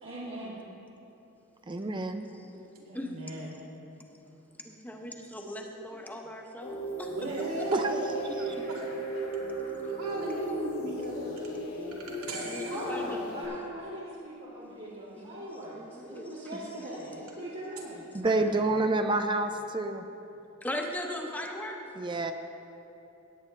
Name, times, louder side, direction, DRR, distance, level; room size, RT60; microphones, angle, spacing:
voice 1, 0.0-0.6 12.7-18.1, right 1 dB, 60° right, -10 dB, 2.1 m, -40 dB
voice 2, 1.7-2.3 7.7-8.0 18.1-20.0 22.0-22.3, right 2 dB, 20° right, 7 dB, 0.4 m, -28 dB
voice 3, 2.2-3.1 3.5-3.7 4.6-8.7 9.7-9.8 10.3-10.8 11.5-11.6 12.4-13.4 15.2-17.3 20.6-21.8, left 1 dB, 10° left, 1 dB, 0.9 m, -40 dB
voice 4, 2.9-3.5 7.1-8.9 9.9-11.5 12.2-12.7 18.2-18.8, right 1 dB, 85° right, -4 dB, 2.4 m, -37 dB
sound 1, 6.6-13.4, right 1 dB, 80° left, 2.9 m, -36 dB
17.5 x 9.0 x 3.3 m, 2.9 s
head